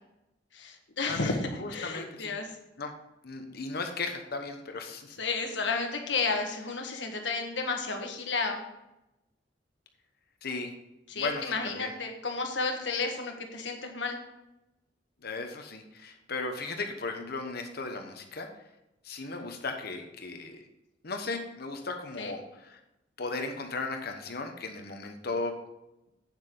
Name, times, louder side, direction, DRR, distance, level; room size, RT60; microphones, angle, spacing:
voice 1, 0.5-2.5 5.2-8.6 11.1-14.2 22.2-22.3, left 4 dB, 90° left, 4 dB, 1.5 m, -32 dB
voice 2, 1.6-2.3 2.8-2.9 3.2-5.2 10.4-10.7 11.1-11.9 15.2-18.5 19.0-20.6 21.0-22.8 23.2-25.5, left 3 dB, 60° left, 5 dB, 1.1 m, -36 dB
8.8 x 7.7 x 3.8 m, 0.91 s
head